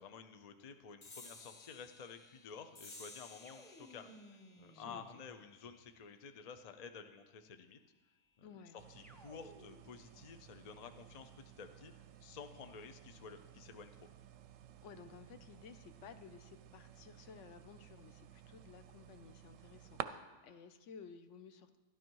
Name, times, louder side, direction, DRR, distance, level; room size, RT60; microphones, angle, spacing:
voice 1, 0.0-7.8 8.4-11.3 11.6-11.9 12.2-13.9, left 5 dB, 75° left, 8 dB, 0.3 m, -52 dB
sound 1, 1.0-7.9, left 3 dB, 35° left, 0.9 m, -58 dB
sound 2, 3.4-5.9 9.0-10.1, equal, ahead, 0.6 m, -59 dB
voice 2, 4.7-5.0 8.4-8.8 14.8-21.8, left 6 dB, 60° left, 10 dB, 0.8 m, -55 dB
sound 3, 8.8-20.0, right 11 dB, 70° right, 0.8 m, -53 dB
12.5 x 11.5 x 4.6 m, 1.2 s
omnidirectional pair, 1.6 m